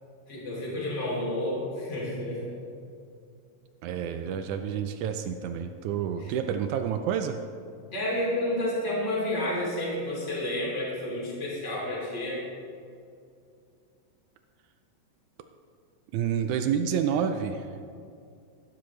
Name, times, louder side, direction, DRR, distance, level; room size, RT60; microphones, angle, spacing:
voice 1, 0.3-2.4 6.2-6.3 7.9-12.4, left 1 dB, 20° left, -4 dB, 2.9 m, -30 dB
voice 2, 3.8-7.4 16.1-17.7, right 8 dB, 80° right, 7 dB, 1.8 m, -29 dB
14.5 x 12.0 x 3.2 m, 2.4 s
omnidirectional pair, 3.9 m